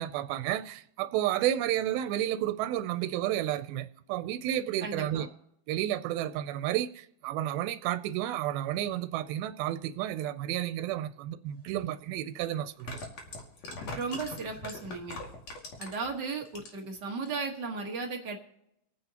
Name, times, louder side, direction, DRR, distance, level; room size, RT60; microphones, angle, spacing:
voice 1, 0.0-5.3 5.7-13.0, right 12 dB, 90° right, 2.5 m, -31 dB
voice 2, 4.8-5.2 13.9-15.2 15.8-18.4, right 4 dB, 65° right, 1.0 m, -35 dB
sound 1, 11.7-11.8 12.7-16.1 16.5-17.0 17.3-17.4, left 2 dB, 50° left, 3.1 m, -41 dB
28.0 x 9.4 x 2.9 m
omnidirectional pair, 4.2 m